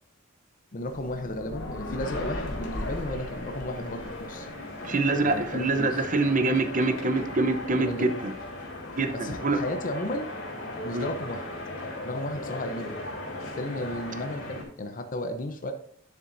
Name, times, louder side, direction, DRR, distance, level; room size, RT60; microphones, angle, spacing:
voice 1, 0.7-4.5 5.2-6.0 7.7-8.1 9.1-10.3 10.8-11.4 12.0-13.0 13.5-15.7, left 1 dB, 40° left, 6 dB, 0.7 m, -34 dB
sound 1, 0.8-5.8, left 1 dB, 60° left, 1.1 m, -38 dB
sound 2, 2.0-14.6, left 2 dB, 85° left, 2.7 m, -38 dB
voice 2, 4.8-8.3 9.0-9.6 10.9-11.1, right 3 dB, 40° right, 8 dB, 0.8 m, -25 dB
9.9 x 7.1 x 2.7 m, 0.67 s
head